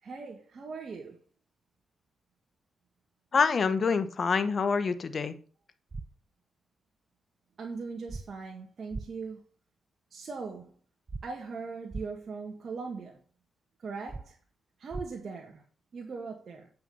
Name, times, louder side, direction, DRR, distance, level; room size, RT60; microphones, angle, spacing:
voice 1, 0.0-1.2 7.6-9.4 10.1-10.7 11.2-13.2 13.8-14.4 14.8-15.6 15.9-16.7, right 4 dB, 55° right, 1.8 m, -40 dB
voice 2, 3.3-5.3, left 5 dB, 50° left, 1.1 m, -26 dB
sound 1, 5.9-6.1 8.1-8.2 8.9-9.0 11.1-11.2 11.9-12.0 14.1-14.2 14.9-15.0, right 3 dB, 40° right, 0.6 m, -37 dB
8.7 x 5.8 x 5.5 m
cardioid pair, 65°, 0 cm